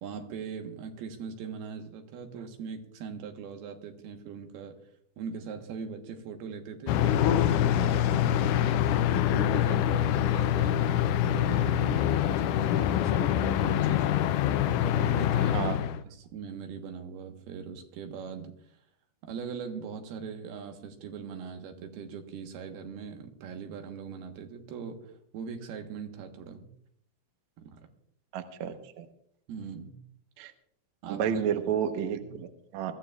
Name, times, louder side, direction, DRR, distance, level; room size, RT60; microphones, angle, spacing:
voice 1, 0.0-4.7 5.2-8.8 9.3-14.1 14.8-15.7 16.0-18.5 19.2-26.6 27.6-27.9 29.5-30.0 31.0-31.4 32.3-32.4, right 6 dB, 80° right, 4 dB, 3.3 m, -41 dB
sound 1, 6.9-16.0, left 11 dB, 85° left, 1.8 m, -25 dB
voice 2, 28.3-29.1 30.4-30.5 31.1-32.9, right 8 dB, 65° right, 6 dB, 1.9 m, -31 dB
23.0 x 14.5 x 2.4 m, 0.68 s
omnidirectional pair, 4.4 m